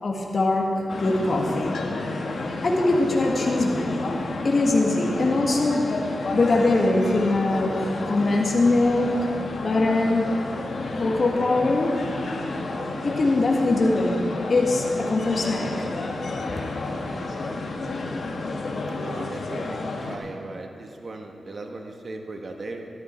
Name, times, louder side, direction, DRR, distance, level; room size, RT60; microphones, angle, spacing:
voice 1, 0.0-1.8 2.3-4.1 4.4-6.0 6.3-9.3 9.6-10.3 11.0-12.1 13.0-15.9, left 2 dB, 55° left, -1 dB, 1.7 m, -22 dB
sound 1, 0.9-20.2, left 2 dB, 70° left, 1.4 m, -31 dB
voice 2, 19.0-19.8 20.1-22.9, right 2 dB, 55° right, 3 dB, 1.5 m, -37 dB
13.5 x 12.5 x 4.5 m, 2.4 s
cardioid pair, 55°, 0 cm